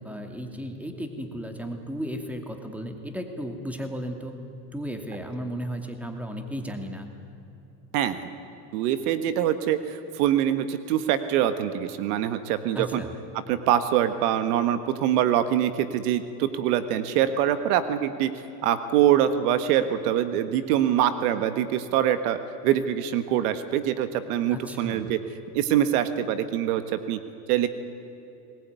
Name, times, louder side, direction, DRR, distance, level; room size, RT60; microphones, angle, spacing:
voice 1, 0.0-4.4 4.7-7.1 12.7-13.1 24.5-25.0, equal, 5° right, 5 dB, 2.6 m, -34 dB
voice 2, 7.9-8.3 8.7-13.0 13.5-18.3 18.6-22.4 22.6-25.2 25.5-27.2 27.5-27.7, right 11 dB, 65° right, 11 dB, 1.6 m, -24 dB
21.0 x 20.0 x 9.6 m, 2.9 s
supercardioid pair, 115°, 48 cm